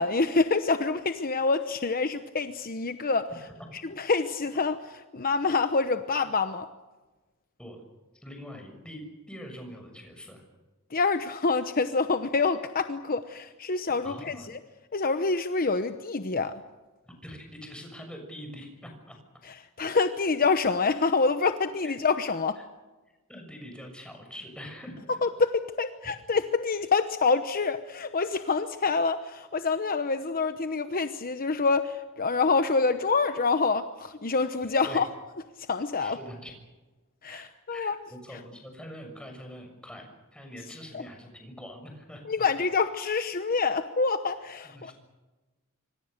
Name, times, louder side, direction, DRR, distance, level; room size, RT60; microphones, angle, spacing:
voice 1, 0.0-3.3 3.8-6.7 10.9-14.6 14.9-16.6 19.5-22.6 25.1-35.1 35.7-36.2 37.2-38.0 40.9-41.0 42.3-44.9, left 4 dB, 40° left, 9 dB, 1.0 m, -26 dB
voice 2, 8.2-10.4 14.0-14.5 17.0-19.2 21.8-21.9 22.5-22.6 23.3-25.1 34.6-35.0 36.0-36.5 37.3-42.5 44.6-44.9, equal, 5° left, 3 dB, 6.6 m, -44 dB
26.0 x 25.5 x 6.7 m, 1.2 s
head